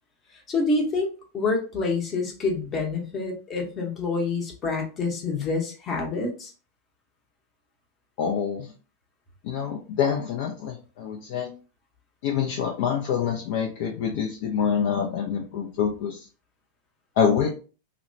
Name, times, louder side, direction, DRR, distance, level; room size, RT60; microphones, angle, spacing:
voice 1, 0.5-1.1 1.3-6.5, left 3 dB, 25° left, 1 dB, 0.8 m, -27 dB
voice 2, 8.2-8.7 9.4-11.5 12.2-16.3 17.2-17.5, left 7 dB, 50° left, 1 dB, 0.4 m, -26 dB
2.8 x 2.1 x 2.6 m, 0.35 s
figure-of-eight pair, 90°, 0 cm